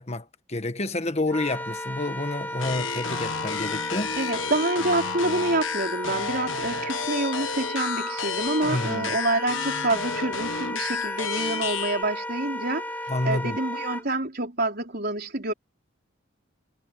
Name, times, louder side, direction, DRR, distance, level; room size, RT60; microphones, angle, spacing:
voice 1, 0.0-4.3 8.7-9.2 13.1-13.6, left 2 dB, 30° left, 1.5 m, -29 dB
Wind instrument woodwind instrument, 1.3-14.0, left 1 dB, 10° left, 3.1 m, -34 dB
sound 1, 2.6-12.0, left 6 dB, 65° left, 1.5 m, -32 dB
voice 2, 4.2-15.5, right 2 dB, 45° right, 4.5 m, -27 dB
head